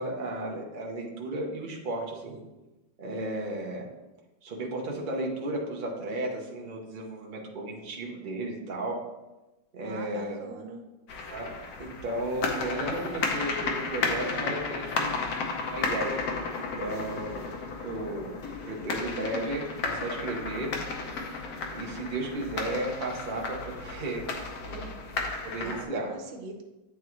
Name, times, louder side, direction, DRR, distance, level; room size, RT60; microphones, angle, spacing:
voice 1, 0.0-2.4 3.0-3.9 4.4-9.0 9.7-10.4 11.3-11.5 11.8-15.2 15.7-18.3 18.7-20.7 21.7-24.3 25.4-26.1, right 1 dB, 35° right, -1 dB, 0.8 m, -34 dB
voice 2, 9.8-10.9 24.6-26.6, right 3 dB, 85° right, 4 dB, 1.5 m, -42 dB
sound 1, 11.1-25.8, left 4 dB, 60° left, 1.2 m, -33 dB
9.1 x 3.7 x 3.1 m, 1.1 s
omnidirectional pair, 2.0 m